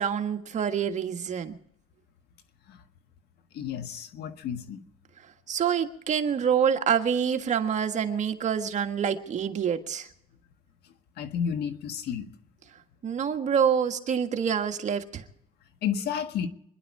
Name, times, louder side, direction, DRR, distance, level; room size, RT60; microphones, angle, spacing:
voice 1, 0.0-1.6 5.5-10.1 13.0-15.2, right 7 dB, 45° right, 5 dB, 1.7 m, -26 dB
voice 2, 3.5-4.8 11.2-12.3 15.8-16.5, left 8 dB, 75° left, 8 dB, 1.6 m, -31 dB
25.5 x 11.0 x 4.8 m, 0.72 s
cardioid pair, 110°, 17 cm